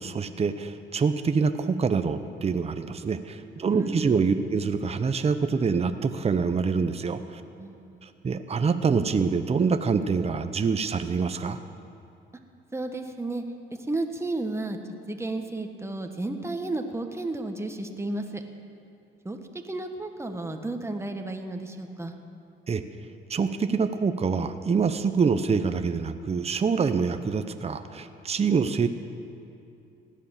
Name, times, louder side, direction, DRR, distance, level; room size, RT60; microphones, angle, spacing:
voice 1, 0.0-7.4 8.0-11.6 22.7-22.8 23.3-28.9, right 5 dB, 30° right, 9 dB, 0.8 m, -25 dB
voice 2, 3.7-4.1 7.5-8.1 12.7-13.4 13.7-18.4 19.2-19.4 19.6-22.1, right 2 dB, 15° right, 5 dB, 1.3 m, -33 dB
16.5 x 10.5 x 7.3 m, 2.7 s
cardioid pair, 90°, 20 cm